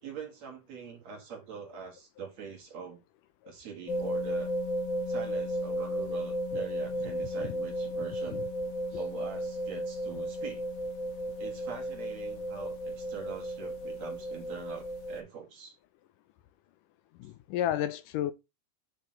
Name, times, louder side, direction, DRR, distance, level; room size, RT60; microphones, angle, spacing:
voice 1, 0.0-3.0 3.5-4.5 5.1-8.5 8.9-10.6 11.4-15.8 17.2-17.3, right 6 dB, 55° right, 3.2 m, -44 dB
sound 1, 3.9-15.2, equal, 60° left, 1.2 m, -34 dB
voice 2, 17.2-18.3, left 12 dB, 80° left, 2.2 m, -31 dB
10.0 x 7.0 x 3.1 m
omnidirectional pair, 3.9 m